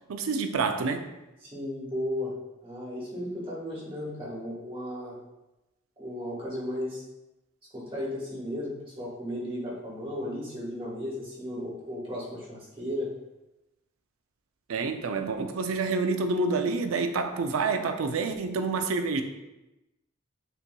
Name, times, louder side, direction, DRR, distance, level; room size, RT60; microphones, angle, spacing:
voice 1, 0.1-1.0 14.7-19.2, right 4 dB, 90° right, 7 dB, 0.4 m, -28 dB
voice 2, 1.4-2.3 2.6-5.2 6.0-7.0 7.7-13.1, left 1 dB, 25° right, -6 dB, 1.4 m, -35 dB
6.8 x 2.9 x 2.2 m, 0.97 s
head